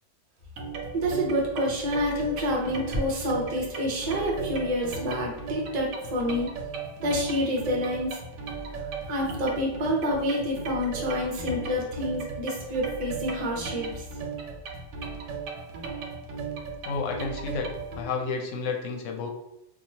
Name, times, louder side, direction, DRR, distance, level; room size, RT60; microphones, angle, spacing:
sound 1, 0.6-18.0, right 4 dB, 75° right, 0.9 m, -36 dB
voice 1, 0.9-6.5 7.0-8.2 9.1-14.0, equal, 40° right, -2 dB, 0.7 m, -28 dB
voice 2, 16.9-17.7 17.9-19.3, left 4 dB, 80° left, 2 dB, 0.9 m, -30 dB
3.0 x 2.3 x 2.8 m, 0.89 s
omnidirectional pair, 1.3 m